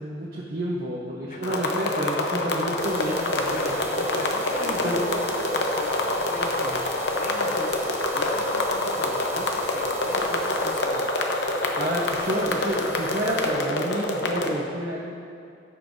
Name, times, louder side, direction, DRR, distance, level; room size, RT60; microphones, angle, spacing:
voice 1, 0.0-5.0 7.4-7.5 11.8-15.1, right 1 dB, 50° right, -5 dB, 0.9 m, -30 dB
voice 2, 1.3-1.9 3.5-3.8 4.2-11.2, left 2 dB, 40° left, 4 dB, 0.6 m, -38 dB
sound 1, 1.4-14.5, left 2 dB, 75° left, 0.8 m, -26 dB
sound 2, 2.8-13.5, right 2 dB, 15° right, 0.7 m, -41 dB
15.5 x 5.4 x 2.7 m, 2.4 s
head